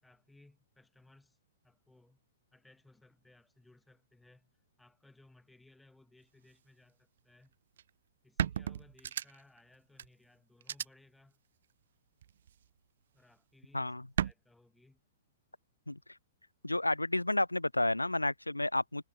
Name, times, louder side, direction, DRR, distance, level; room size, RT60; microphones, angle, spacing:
voice 1, 0.0-1.4 1.6-2.2 2.5-7.5 8.2-11.4 13.1-15.0, left 2 dB, 5° left, 7.9 m, -63 dB
sound 1, 7.8-7.9 8.4-9.6 10.0-10.1 10.6-10.9 12.2-12.7 14.2-14.3, right 9 dB, 55° right, 0.3 m, -34 dB
voice 2, 16.6-19.0, left 2 dB, 85° left, 0.4 m, -31 dB
figure-of-eight pair, 110°, 0 cm